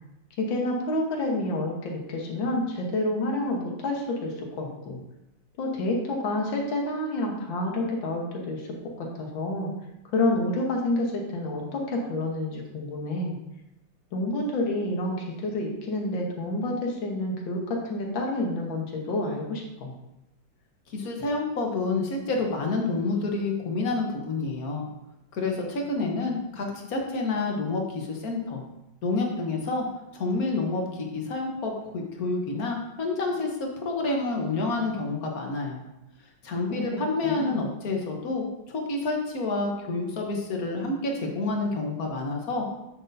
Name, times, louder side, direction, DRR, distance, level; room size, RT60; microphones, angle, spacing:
voice 1, 0.4-5.0 5.6-9.7 10.1-13.4 14.1-19.9 36.7-37.7, left 1 dB, 80° left, 0 dB, 1.9 m, -29 dB
voice 2, 20.9-24.9 25.3-28.6 29.0-29.8 30.1-35.8 36.4-42.6, left 3 dB, 55° left, 1 dB, 1.5 m, -28 dB
7.9 x 6.1 x 2.6 m, 0.90 s
omnidirectional pair, 2.1 m